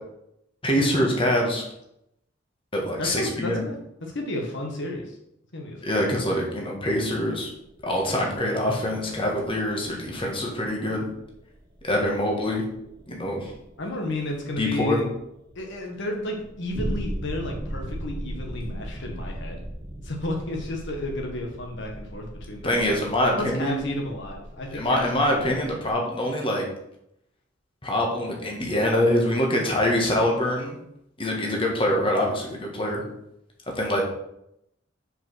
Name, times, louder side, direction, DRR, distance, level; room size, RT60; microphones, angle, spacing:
voice 1, 0.6-1.6 2.7-3.6 5.8-7.5 7.8-11.0 11.8-12.6 13.1-13.5 14.6-15.0 22.6-23.8 24.7-26.6 27.8-30.8 31.2-33.0 33.7-34.0, left 1 dB, 25° left, 0 dB, 1.7 m, -24 dB
voice 2, 3.0-3.7 4.0-5.2 5.5-5.8 13.8-15.2 15.5-19.6 20.0-23.0 23.3-25.0 25.3-25.5, left 1 dB, 65° left, 1 dB, 1.4 m, -32 dB
sound 1, 7.4-25.9, right 1 dB, 25° right, 1.0 m, -38 dB
5.4 x 5.3 x 6.3 m, 0.79 s
head